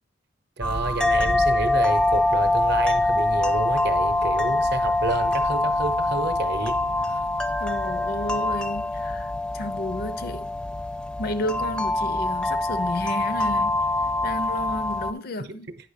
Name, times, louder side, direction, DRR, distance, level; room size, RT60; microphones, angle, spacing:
sound 1, 0.6-15.1, left 2 dB, 5° left, 0.5 m, -24 dB
voice 1, 0.6-7.2 15.4-15.6, right 2 dB, 55° right, 0.7 m, -30 dB
voice 2, 7.6-10.5 11.2-13.8 14.2-15.7, left 1 dB, 55° left, 0.5 m, -32 dB
9.1 x 3.3 x 5.6 m
head